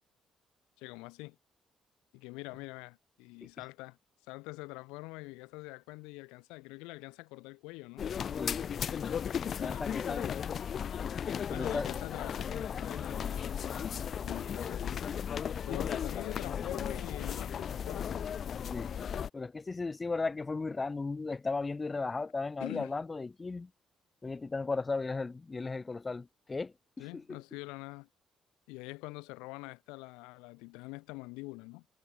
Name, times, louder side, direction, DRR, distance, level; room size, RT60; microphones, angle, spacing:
voice 1, 0.8-1.4 2.1-4.0 4.3-8.1 9.6-10.6 11.5-13.8 14.2-15.1 15.7-18.3 22.6-22.9 27.0-28.1 28.7-31.9, left 25 dB, 90° left, 1.0 m, -45 dB
sound 1, 8.0-19.3, left 8 dB, 60° left, 0.6 m, -35 dB
voice 2, 9.1-10.2 11.5-11.9 18.7-18.9 19.3-23.7 24.2-27.4, left 3 dB, 30° left, 1.5 m, -36 dB
sound 2, 12.2-17.0, left 1 dB, 15° left, 2.6 m, -57 dB
supercardioid pair, 55°, 0 cm